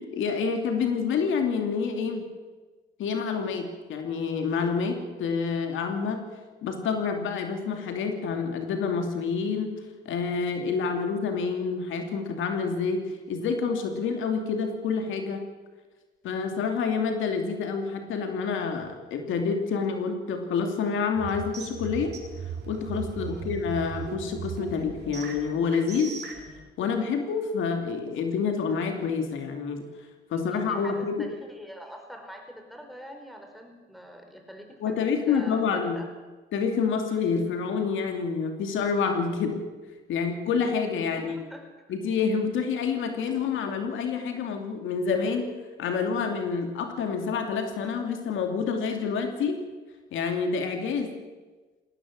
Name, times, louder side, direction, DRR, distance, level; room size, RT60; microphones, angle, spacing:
voice 1, 0.0-2.3 3.0-6.2 6.6-9.8 10.0-15.4 16.2-22.2 22.7-26.1 26.8-29.8 30.3-31.3 34.8-36.0 36.5-39.6 40.1-41.4 41.9-45.5 45.8-49.6 50.1-51.1, left 5 dB, 80° left, 5 dB, 2.7 m, -28 dB
sound 1, 21.2-26.5, right 6 dB, 55° right, 4.3 m, -38 dB
voice 2, 30.5-36.1 41.0-41.6, equal, ahead, 4 dB, 5.1 m, -44 dB
19.5 x 17.5 x 7.6 m, 1.3 s
cardioid pair, 90°, 20 cm